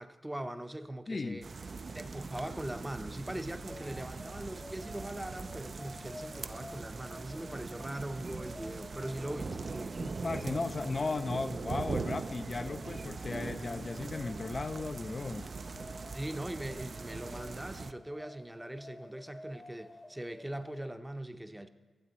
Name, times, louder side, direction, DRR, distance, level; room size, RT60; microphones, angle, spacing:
voice 1, 0.0-1.5 1.9-10.0 16.1-21.7, right 1 dB, 10° right, 9 dB, 0.6 m, -41 dB
voice 2, 1.1-1.4 10.0-15.5, left 3 dB, 45° left, 10 dB, 0.3 m, -36 dB
sound 1, 1.4-17.9, right 4 dB, 55° right, 0.3 m, -41 dB
sound 2, 3.7-21.0, left 1 dB, 30° left, 0.8 m, -52 dB
12.5 x 7.4 x 4.0 m, 1.3 s
cardioid pair, 50°, 0 cm